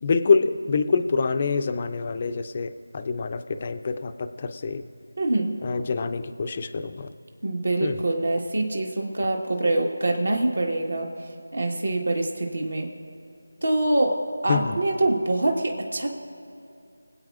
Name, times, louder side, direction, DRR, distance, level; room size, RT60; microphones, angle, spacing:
voice 1, 0.0-4.8 5.6-7.1 7.8-8.0 14.5-14.8, left 4 dB, 30° left, 10 dB, 0.5 m, -25 dB
voice 2, 5.2-5.5 7.4-11.1 11.5-12.9 13.6-14.2 14.4-16.1, right 2 dB, 65° right, 1 dB, 1.6 m, -24 dB
25.5 x 8.5 x 2.5 m, 2.5 s
figure-of-eight pair, 165°, 0 cm